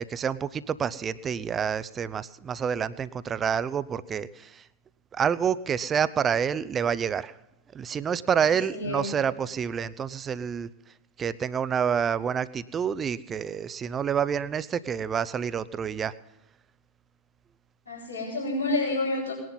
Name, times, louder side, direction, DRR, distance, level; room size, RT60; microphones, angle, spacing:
voice 1, 0.0-4.6 5.1-7.3 7.7-10.7 11.2-16.1, right 7 dB, 25° right, 17 dB, 0.6 m, -28 dB
voice 2, 8.4-9.1 17.9-19.3, left 2 dB, 80° left, -9 dB, 6.3 m, -29 dB
19.5 x 11.0 x 5.6 m, 0.90 s
figure-of-eight pair, 90°, 0 cm